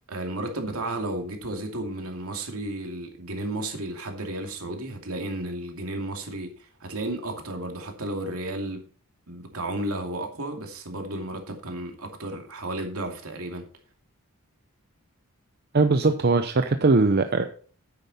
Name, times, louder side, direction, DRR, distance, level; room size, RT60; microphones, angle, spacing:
voice 1, 0.1-8.8 9.3-13.6, right 1 dB, 75° right, 2.6 m, -33 dB
voice 2, 15.7-17.5, right 3 dB, 45° right, 0.6 m, -20 dB
9.7 x 9.1 x 4.2 m
head